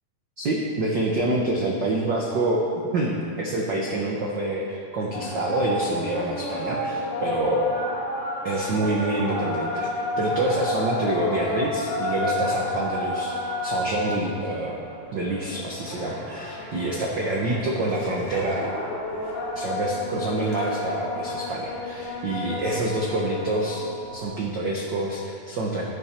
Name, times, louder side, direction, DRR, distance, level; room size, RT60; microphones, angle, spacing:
voice 1, 0.4-2.6 2.9-7.7 8.4-14.8 15.1-18.8 19.5-25.8, right 1 dB, 60° right, -2 dB, 1.2 m, -27 dB
sound 1, 5.1-24.3, left 1 dB, 85° left, 3.6 m, -31 dB
14.0 x 11.0 x 4.4 m, 2.6 s
omnidirectional pair, 3.4 m